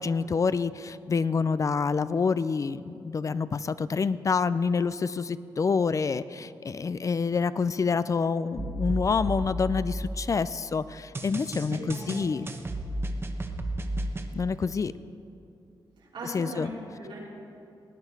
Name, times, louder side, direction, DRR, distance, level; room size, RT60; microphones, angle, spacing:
voice 1, 0.0-12.5 14.3-14.9 16.2-16.7, left 5 dB, 40° left, 15 dB, 0.4 m, -27 dB
sound 1, 8.6-10.4 11.1-14.3, right 1 dB, 30° right, 1.0 m, -33 dB
voice 2, 11.7-12.3 16.0-17.2, right 1 dB, 90° right, -6 dB, 3.6 m, -39 dB
18.5 x 8.9 x 4.7 m, 2.6 s
cardioid pair, 75°, 8 cm